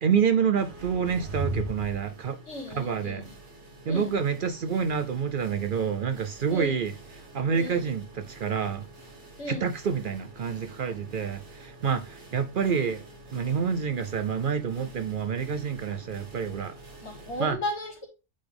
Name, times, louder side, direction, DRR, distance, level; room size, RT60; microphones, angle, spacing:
voice 1, 0.0-2.4 2.7-3.3 3.9-8.9 9.5-13.0 13.3-16.8 17.4-17.6, right 6 dB, 55° right, 0.7 m, -28 dB
sound 1, 0.5-17.5, right 2 dB, 80° right, 1.8 m, -43 dB
voice 2, 2.5-3.3 3.9-4.1 6.5-6.7 7.6-7.8 9.4-9.6 17.0-18.1, left 1 dB, 75° left, 2.5 m, -35 dB
8.3 x 4.0 x 3.4 m
omnidirectional pair, 1.2 m